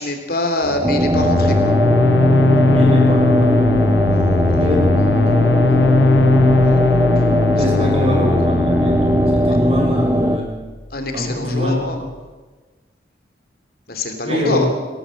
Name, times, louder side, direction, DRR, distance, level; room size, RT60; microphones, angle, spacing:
voice 1, 0.0-1.7 4.1-4.7 6.6-6.8 7.8-7.9 9.5-9.6 10.9-12.0 13.9-14.7, left 1 dB, 55° left, 5 dB, 3.0 m, -25 dB
sound 1, 0.6-12.2, equal, ahead, 6.8 m, -37 dB
sound 2, 0.8-10.4, equal, 15° right, 1.3 m, -18 dB
sound 3, 1.1-9.7, left 3 dB, 85° left, 0.7 m, -18 dB
voice 2, 2.7-3.6 4.4-5.9 7.5-10.5 11.1-11.8 14.2-14.7, left 1 dB, 35° right, 0 dB, 6.6 m, -24 dB
21.5 x 17.5 x 7.6 m, 1.3 s
head